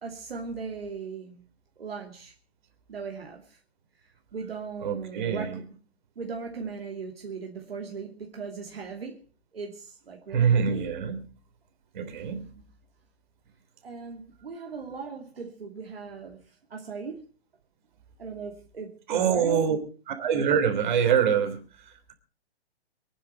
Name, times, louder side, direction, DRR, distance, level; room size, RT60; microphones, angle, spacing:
voice 1, 0.0-1.4 1.8-2.3 2.9-3.6 4.0-5.6 6.2-9.2 9.5-10.8 12.5-12.7 13.8-17.3 18.2-19.7, right 5 dB, 65° right, 1 dB, 2.8 m, -38 dB
voice 2, 4.8-5.6 10.3-11.2 11.9-12.4 19.1-19.8 20.1-22.1, right 7 dB, 50° right, 7 dB, 3.6 m, -25 dB
24.0 x 10.0 x 4.5 m, 0.36 s
figure-of-eight pair, 125°, 32 cm